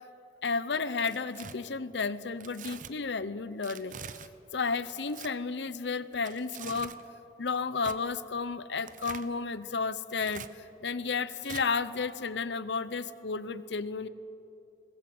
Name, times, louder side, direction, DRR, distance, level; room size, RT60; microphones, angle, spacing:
voice 1, 0.4-4.0 4.5-6.9 7.4-14.1, left 4 dB, 90° left, 15 dB, 0.8 m, -32 dB
Tearing, 0.9-1.5 2.4-2.9 3.6-4.3 5.0-5.3 6.1-7.0 7.8-8.0 8.8-9.3 10.1-10.5 11.4-11.6, right 7 dB, 45° right, 0.8 m, -44 dB
23.0 x 19.5 x 7.8 m, 2.8 s
head